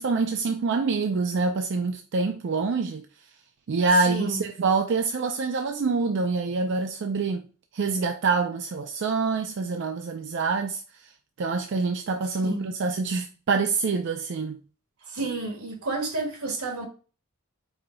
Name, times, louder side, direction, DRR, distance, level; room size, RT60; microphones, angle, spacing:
voice 1, 0.0-3.1 3.7-7.4 7.7-10.8 11.4-14.6, right 4 dB, 55° right, 0.4 m, -26 dB
voice 2, 3.9-4.4 12.4-12.7 15.0-16.9, right 2 dB, 85° right, 1.6 m, -31 dB
5.0 x 3.8 x 2.2 m
head